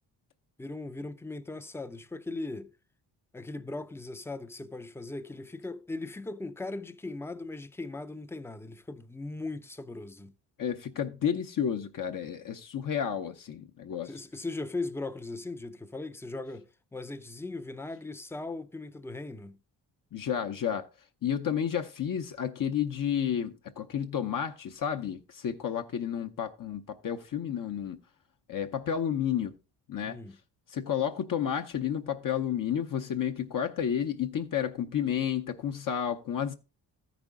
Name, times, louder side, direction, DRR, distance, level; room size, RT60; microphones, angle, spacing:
voice 1, 0.6-2.8 3.3-10.3 14.0-19.6 30.0-30.4, left 2 dB, 5° left, 0.5 m, -39 dB
voice 2, 10.6-14.1 20.1-20.9 21.2-28.0 28.5-29.5 29.9-30.2 30.7-36.5, left 8 dB, 50° left, 0.8 m, -31 dB
13.5 x 5.1 x 3.6 m
cardioid pair, 85°, 41 cm